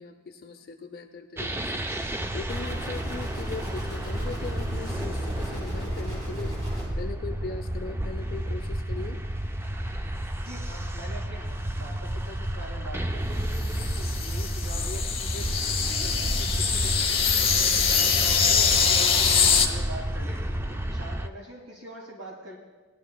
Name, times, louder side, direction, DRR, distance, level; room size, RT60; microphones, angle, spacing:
voice 1, 0.0-1.8 2.3-6.6 7.0-9.2, left 4 dB, 50° left, 3 dB, 0.5 m, -39 dB
sound 1, 1.4-21.3, right 1 dB, 10° right, 0.3 m, -31 dB
sound 2, 2.5-6.9, equal, 35° right, 3.5 m, -38 dB
voice 2, 10.4-15.5 15.8-17.2 17.6-22.6, equal, 85° right, -3 dB, 2.1 m, -43 dB
sound 3, 13.5-19.7, left 6 dB, 30° left, 0.9 m, -23 dB
18.0 x 11.0 x 2.3 m, 1.2 s
head